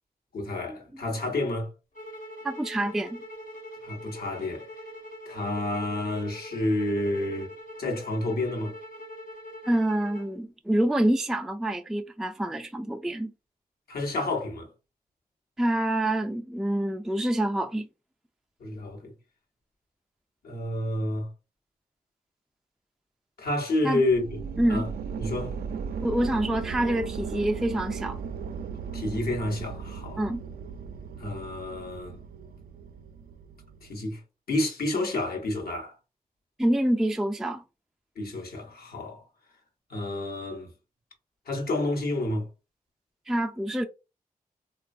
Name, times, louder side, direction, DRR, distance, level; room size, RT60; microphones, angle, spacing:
voice 1, 0.3-1.7 3.8-4.7 5.3-7.5 7.8-8.8 13.9-14.7 18.6-19.1 20.4-21.3 23.4-24.4 24.7-24.9 25.2-25.6 28.9-30.2 31.2-32.2 33.8-34.2 34.5-35.9 38.2-39.2 39.9-40.7 41.5-42.5, left 2 dB, 80° left, 1.0 m, -29 dB
sound 1, 1.9-10.3, equal, 60° left, 1.0 m, -43 dB
voice 2, 2.4-3.2 9.6-13.3 15.6-17.9 23.8-24.0 24.6-24.8 26.0-28.2 30.2-30.4 36.6-37.6 43.3-43.8, right 1 dB, ahead, 0.3 m, -26 dB
sound 2, 24.0-34.0, right 6 dB, 75° right, 0.4 m, -37 dB
3.1 x 2.2 x 2.5 m
cardioid pair, 40°, 16 cm